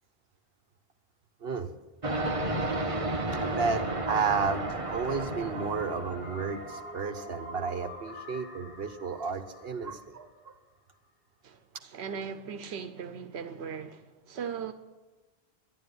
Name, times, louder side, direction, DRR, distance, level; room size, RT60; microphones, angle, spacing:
sound 1, 2.0-6.8, right 2 dB, 30° right, 1.2 m, -32 dB
voice 1, 3.4-10.6, right 5 dB, 70° right, 1.2 m, -32 dB
sound 2, 4.6-10.5, equal, 70° left, 6.9 m, -45 dB
voice 2, 11.4-14.7, right 7 dB, 85° right, 1.0 m, -38 dB
12.0 x 11.5 x 9.5 m
omnidirectional pair, 1.1 m